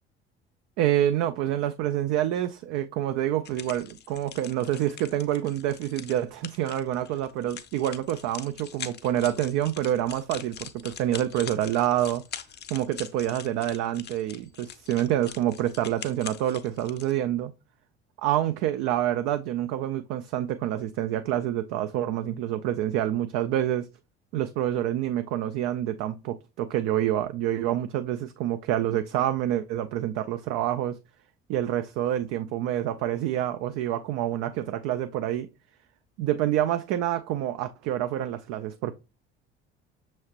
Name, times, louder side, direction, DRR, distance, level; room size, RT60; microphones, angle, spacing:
voice 1, 0.8-12.2 12.7-17.5 18.2-23.9 24.3-31.0 31.5-35.5 36.2-38.9, right 12 dB, 50° right, 0.4 m, -27 dB
sound 1, 3.5-17.1, left 9 dB, 30° left, 0.6 m, -43 dB
6.3 x 2.9 x 2.8 m
figure-of-eight pair, 55°, 33 cm